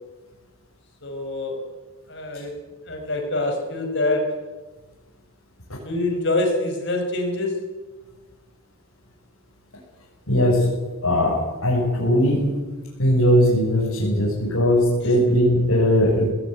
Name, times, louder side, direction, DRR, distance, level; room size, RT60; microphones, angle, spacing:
voice 1, 1.0-1.6 2.1-2.5 2.9-4.4 5.8-7.6, left 2 dB, 50° left, 4 dB, 5.0 m, -25 dB
voice 2, 10.3-10.7 11.0-12.5 13.0-16.3, equal, 80° left, -5 dB, 7.2 m, -19 dB
19.5 x 17.5 x 9.4 m, 1.2 s
head